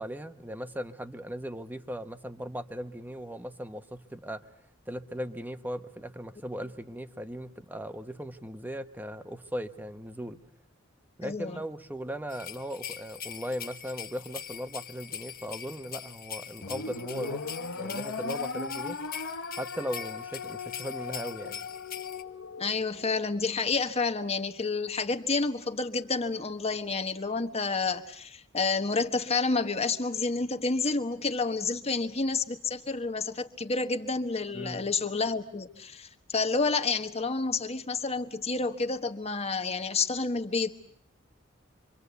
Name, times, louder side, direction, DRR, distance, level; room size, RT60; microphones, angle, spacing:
voice 1, 0.0-4.4 4.9-10.4 11.2-17.4 17.8-19.0 19.5-21.7 34.5-34.9, equal, 10° right, 9 dB, 1.2 m, -38 dB
voice 2, 11.2-11.6 22.6-40.7, left 4 dB, 30° left, 8 dB, 1.4 m, -29 dB
sound 1, 12.3-22.2, left 9 dB, 50° left, 1.3 m, -42 dB
sound 2, 16.6-23.1, left 4 dB, 90° left, 1.2 m, -38 dB
27.0 x 24.5 x 8.2 m, 0.70 s
head